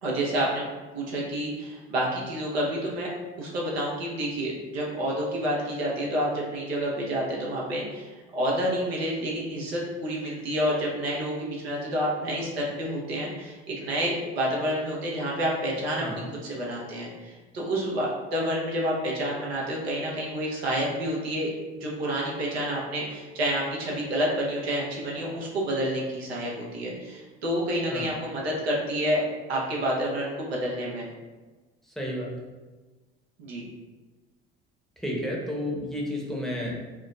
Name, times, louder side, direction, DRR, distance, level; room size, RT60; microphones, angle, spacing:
voice 1, 0.0-0.7 0.9-3.1 3.4-16.1 16.4-21.5 21.8-29.2 29.5-31.0 33.4-33.6, equal, 85° right, -3 dB, 0.8 m, -29 dB
voice 2, 32.0-32.3 35.0-36.8, left 1 dB, ahead, -3 dB, 0.8 m, -31 dB
4.6 x 2.0 x 2.3 m, 1.2 s
hypercardioid pair, 65°, 31 cm